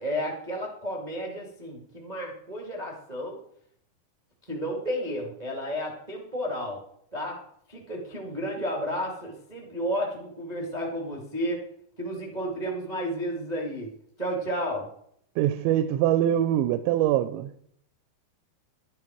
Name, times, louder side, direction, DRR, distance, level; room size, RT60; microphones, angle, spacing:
voice 1, 0.0-3.4 4.5-6.8 7.1-7.4 7.7-11.6 12.0-13.9 14.2-14.9, equal, 30° right, 0.7 m, -32 dB
voice 2, 15.4-17.5, right 11 dB, 90° right, 2.9 m, -23 dB
12.5 x 12.5 x 4.6 m
omnidirectional pair, 5.1 m